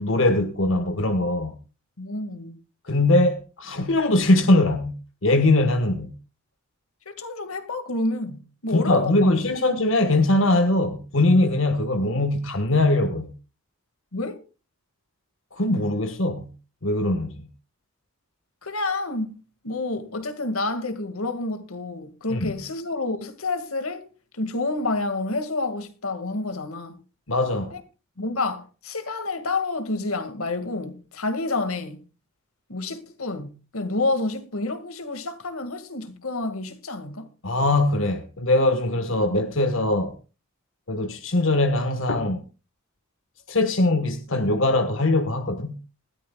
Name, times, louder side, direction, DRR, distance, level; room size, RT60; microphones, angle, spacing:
voice 1, 0.0-1.5 2.9-6.1 8.7-13.3 15.5-16.5 16.8-17.3 22.3-22.6 27.3-27.7 37.4-40.1 40.9-42.4 43.5-45.8, left 2 dB, 65° left, 1.4 m, -21 dB
voice 2, 2.0-2.6 7.1-9.6 14.1-14.4 18.6-24.1 24.3-27.0 27.7-27.8 28.2-32.0 32.7-37.3, left 2 dB, 85° left, 2.0 m, -29 dB
19.5 x 13.5 x 2.3 m
head